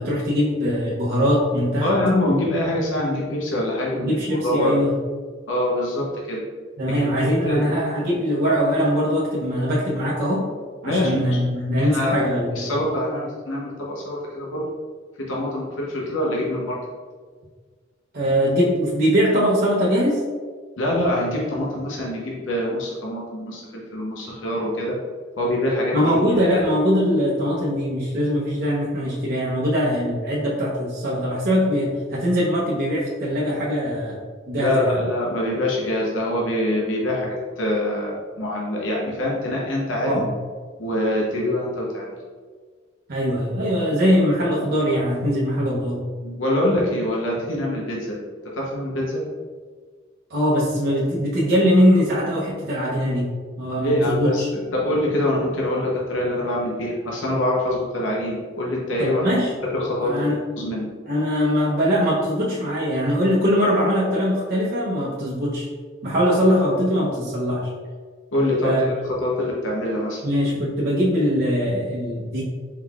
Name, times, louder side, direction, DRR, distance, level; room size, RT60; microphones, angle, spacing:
voice 1, 0.0-1.9 3.9-4.9 6.8-10.5 10.8-12.7 18.1-20.2 25.9-34.2 34.5-35.0 40.1-40.2 43.1-46.0 50.3-53.3 53.6-54.5 59.0-59.5 60.0-60.4 61.1-65.7 66.0-67.7 68.6-68.8 70.2-72.4, equal, 55° right, -6 dB, 0.7 m, -21 dB
voice 2, 1.8-4.1 4.4-4.8 5.5-6.4 6.9-7.7 10.8-11.4 11.8-12.2 12.6-14.6 15.3-16.8 20.8-23.6 23.9-25.0 25.4-26.6 34.6-40.2 40.8-42.1 46.2-48.2 48.7-49.2 53.8-59.3 59.7-60.9 68.3-68.7 69.0-70.2, left 1 dB, 70° left, -3 dB, 0.8 m, -24 dB
4.6 x 3.8 x 2.3 m, 1.5 s
head